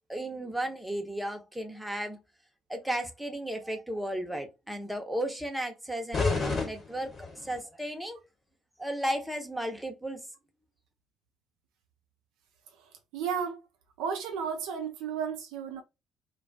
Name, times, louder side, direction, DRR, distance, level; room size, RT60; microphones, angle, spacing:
voice 1, 0.1-2.2 2.7-8.2 8.8-10.2, right 1 dB, 5° right, 0.7 m, -34 dB
sound 1, 6.1-7.6, left 3 dB, 40° left, 1.1 m, -30 dB
voice 2, 13.1-13.6 14.0-15.8, right 7 dB, 70° right, 0.4 m, -33 dB
2.2 x 2.2 x 2.6 m
hypercardioid pair, 50°, 0 cm